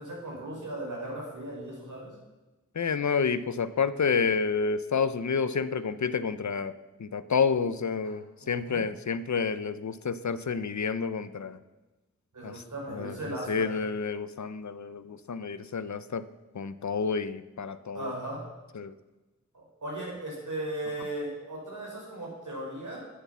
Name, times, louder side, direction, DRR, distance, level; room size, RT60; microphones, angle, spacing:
voice 1, 0.0-2.1 8.0-8.9 12.3-13.7 17.9-18.4 19.5-23.0, right 1 dB, 85° right, -3 dB, 4.9 m, -37 dB
voice 2, 2.8-6.7 7.0-11.6 12.4-12.5 12.9-13.2 13.5-16.2 16.5-18.1 18.8-18.9, left 5 dB, 70° left, 13 dB, 0.7 m, -29 dB
10.0 x 9.6 x 6.9 m, 1.1 s
wide cardioid pair, 50°, 30 cm